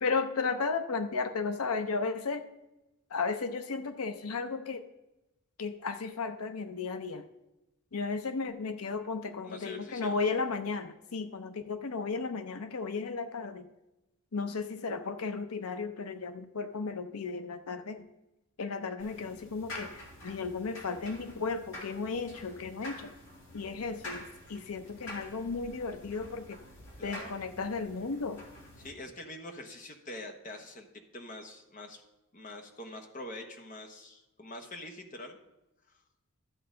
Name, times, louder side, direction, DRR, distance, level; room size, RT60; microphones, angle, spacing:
voice 1, 0.0-2.4 3.1-4.8 5.6-7.2 7.9-13.7 14.3-18.0 18.6-23.1 23.5-26.6 27.0-28.4, left 4 dB, 85° left, 9 dB, 0.6 m, -34 dB
voice 2, 9.4-10.1 27.0-27.3 28.8-32.0 32.3-35.4, left 1 dB, 35° left, 4 dB, 1.1 m, -45 dB
sound 1, 19.0-28.9, left 1 dB, 60° left, 3.0 m, -47 dB
13.5 x 7.7 x 3.8 m, 0.94 s
head